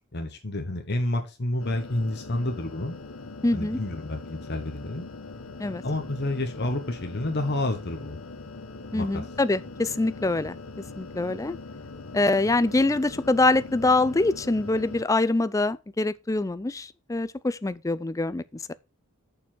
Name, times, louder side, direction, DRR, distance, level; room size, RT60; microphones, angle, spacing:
voice 1, 0.1-3.0 3.5-5.1 5.8-8.2 8.9-9.2, left 1 dB, 50° left, 1.3 m, -29 dB
sound 1, 1.6-15.0, left 3 dB, 70° left, 1.2 m, -41 dB
voice 2, 3.4-3.8 5.6-5.8 8.9-10.6 11.0-11.6 12.1-18.4 18.7-18.8, left 2 dB, 15° left, 0.4 m, -24 dB
6.9 x 5.4 x 6.1 m
head